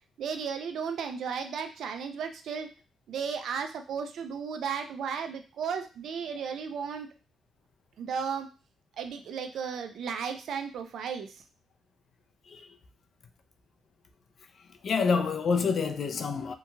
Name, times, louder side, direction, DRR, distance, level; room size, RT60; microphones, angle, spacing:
voice 1, 0.2-2.7 3.1-7.1 8.0-8.5 9.0-11.3, right 6 dB, 70° right, 0.5 m, -34 dB
voice 2, 12.4-12.8 14.6-16.5, left 5 dB, 50° left, 0.4 m, -28 dB
2.9 x 2.3 x 2.7 m
cardioid pair, 90°, 0 cm